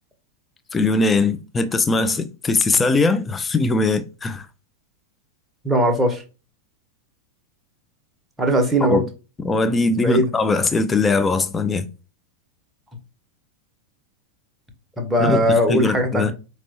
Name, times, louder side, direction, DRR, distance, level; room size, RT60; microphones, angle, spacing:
voice 1, 0.7-4.5 8.9-9.1 9.4-11.9 15.2-16.3, left 3 dB, 15° left, 0.5 m, -20 dB
voice 2, 5.6-6.2 8.4-9.0 10.0-10.3 15.0-16.3, equal, 5° right, 1.1 m, -19 dB
5.2 x 3.0 x 2.9 m
figure-of-eight pair, 90°, 0 cm